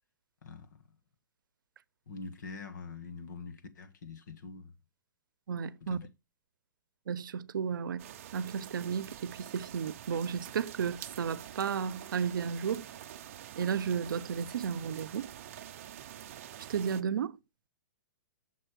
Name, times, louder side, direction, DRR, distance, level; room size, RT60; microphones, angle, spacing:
voice 1, 0.4-0.8 2.1-4.7 5.8-6.1, left 4 dB, 65° left, 1.5 m, -44 dB
voice 2, 5.5-6.0 7.1-8.1 8.3-12.9 13.5-15.3 16.7-17.4, right 7 dB, 85° right, 0.6 m, -33 dB
sound 1, 8.0-17.0, right 11 dB, 45° right, 0.5 m, -47 dB
6.7 x 4.5 x 6.6 m
hypercardioid pair, 175°, 11 cm